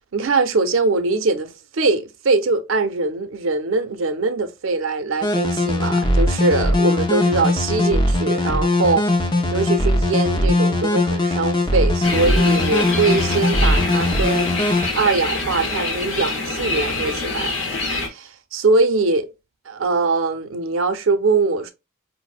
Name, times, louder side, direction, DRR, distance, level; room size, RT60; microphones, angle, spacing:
voice 1, 0.1-9.1 9.5-14.5 14.9-17.5 18.1-19.3 19.7-21.7, right 3 dB, 85° right, 0.5 m, -22 dB
sound 1, 5.2-14.9, left 1 dB, 25° left, 0.4 m, -20 dB
sound 2, 12.0-18.1, left 3 dB, 70° left, 0.8 m, -25 dB
4.8 x 2.0 x 2.3 m
head